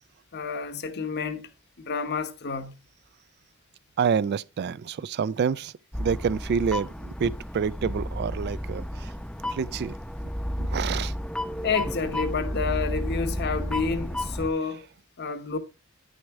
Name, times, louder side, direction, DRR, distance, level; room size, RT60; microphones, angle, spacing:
voice 1, 0.3-1.5 1.8-2.7 11.6-14.9 15.2-15.6, left 5 dB, 55° left, 1.0 m, -29 dB
voice 2, 4.0-5.7 6.0-9.1 9.5-10.0 10.6-11.1, right 6 dB, 50° right, 0.3 m, -28 dB
sound 1, 5.9-14.5, equal, 5° left, 0.7 m, -32 dB
9.9 x 6.3 x 3.5 m
head